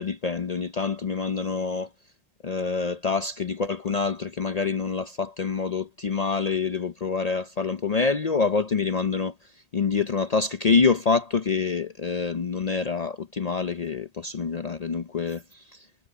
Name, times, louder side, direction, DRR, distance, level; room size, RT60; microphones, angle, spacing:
voice 1, 0.0-1.9 2.4-9.3 9.7-15.8, left 5 dB, 45° left, 0.7 m, -26 dB
omnidirectional pair, 1.1 m